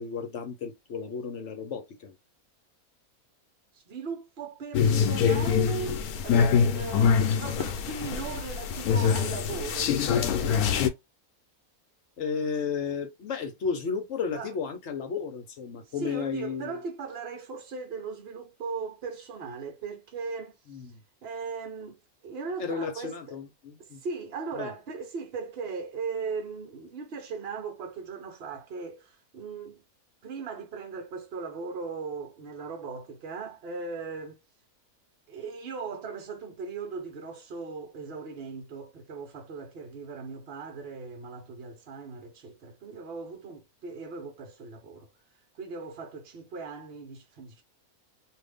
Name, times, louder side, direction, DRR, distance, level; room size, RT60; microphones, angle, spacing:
voice 1, 0.0-2.1 12.2-16.8 20.7-21.0 22.6-24.0 24.5-24.7, left 6 dB, 60° left, 1.0 m, -33 dB
voice 2, 3.7-11.0 14.3-14.5 15.9-20.5 21.2-23.4 23.8-29.8 30.2-34.4 35.3-45.1 45.6-47.6, right 5 dB, 50° right, 1.0 m, -38 dB
sound 1, 4.7-10.9, left 7 dB, 90° left, 1.1 m, -24 dB
2.6 x 2.6 x 3.4 m
omnidirectional pair, 1.5 m